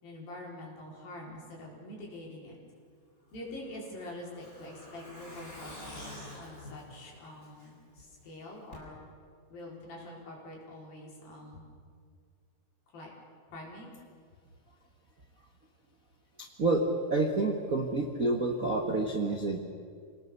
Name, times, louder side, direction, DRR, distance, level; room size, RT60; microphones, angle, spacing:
voice 1, 0.0-2.6 3.3-9.0 9.5-11.6 12.9-13.1 13.5-13.9, left 1 dB, 80° left, -2 dB, 6.4 m, -45 dB
Truck, 3.3-8.0 8.3-8.4 8.7-8.8, left 1 dB, 20° left, 5.6 m, -48 dB
voice 2, 16.4-19.6, right 2 dB, 80° right, 3 dB, 0.7 m, -29 dB
27.5 x 19.5 x 6.8 m, 2.1 s
omnidirectional pair, 4.1 m